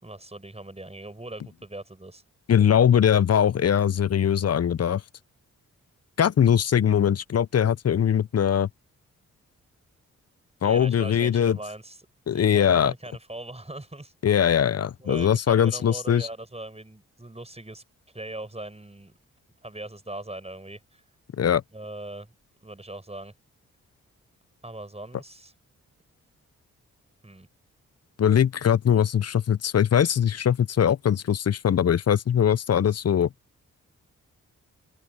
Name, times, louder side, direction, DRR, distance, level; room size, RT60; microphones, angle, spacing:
voice 1, 0.0-2.2 10.6-12.1 12.3-14.1 15.0-17.8 18.1-19.1 19.6-21.0 21.7-23.3 24.6-25.5 27.2-27.5, right 1 dB, 20° right, 5.4 m, -40 dB
voice 2, 2.5-5.0 6.2-8.7 10.6-11.6 12.3-12.9 14.2-16.3 21.4-21.6 28.2-33.3, left 9 dB, 45° left, 0.7 m, -21 dB
open air
supercardioid pair, 40°, 35 cm